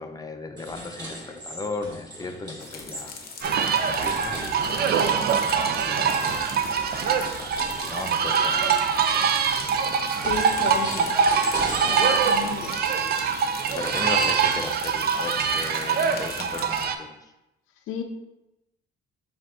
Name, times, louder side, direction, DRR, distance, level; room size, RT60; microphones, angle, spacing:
voice 1, 0.0-9.4 13.7-17.3, left 3 dB, 20° left, 5 dB, 0.5 m, -37 dB
sound 1, 0.6-8.4 8.9-14.5, equal, 20° right, 1.5 m, -39 dB
sound 2, 2.6-16.8, left 5 dB, 50° left, 0.7 m, -42 dB
sound 3, 3.4-16.9, right 6 dB, 50° right, 0.4 m, -24 dB
voice 2, 10.2-11.2 11.8-12.8 17.9-18.0, left 7 dB, 85° left, 5 dB, 0.6 m, -33 dB
7.4 x 2.6 x 2.3 m, 0.94 s
cardioid pair, 90°, 20 cm